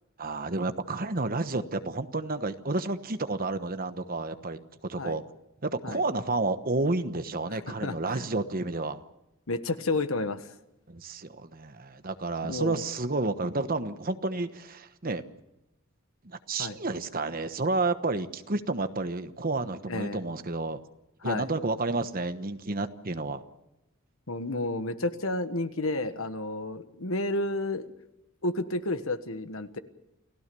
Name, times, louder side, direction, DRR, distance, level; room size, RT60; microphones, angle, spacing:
voice 1, 0.2-5.2 5.6-9.0 10.9-15.2 16.2-20.8 21.2-23.4, right 2 dB, 40° right, 10 dB, 1.2 m, -30 dB
voice 2, 7.5-8.3 9.5-10.5 12.4-12.8 16.6-16.8 19.9-20.2 21.2-21.5 24.3-27.9 28.4-29.8, left 2 dB, 70° left, 10 dB, 1.4 m, -31 dB
29.5 x 16.5 x 7.0 m, 0.91 s
head